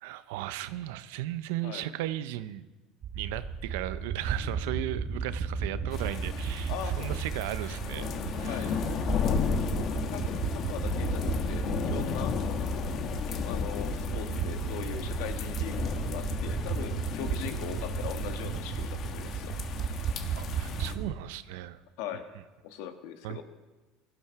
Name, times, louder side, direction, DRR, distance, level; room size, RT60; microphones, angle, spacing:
voice 1, 0.0-2.7 3.1-8.1 8.3-8.8 20.3-21.8 23.2-23.4, right 14 dB, 80° right, 14 dB, 0.7 m, -36 dB
sound 1, 3.0-21.1, right 6 dB, 45° right, 1.4 m, -34 dB
sound 2, 5.9-20.9, left 7 dB, 50° left, 1.3 m, -34 dB
voice 2, 6.7-7.4 8.4-8.8 9.7-12.4 13.3-19.5 22.0-22.3 22.6-23.4, left 9 dB, 75° left, 7 dB, 1.5 m, -40 dB
17.5 x 12.0 x 4.7 m, 1.2 s
supercardioid pair, 105°, 0 cm